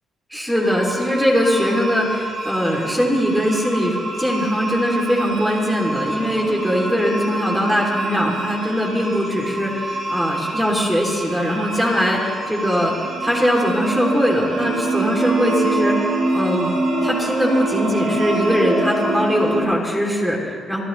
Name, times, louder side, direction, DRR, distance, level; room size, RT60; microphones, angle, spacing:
voice 1, 0.3-12.9 13.2-16.7 17.0-20.8, equal, 5° right, -3 dB, 3.1 m, -21 dB
sound 1, 0.5-19.6, right 2 dB, 55° right, 3.5 m, -26 dB
26.0 x 12.5 x 3.3 m, 2.1 s
cardioid pair, 90°, 0 cm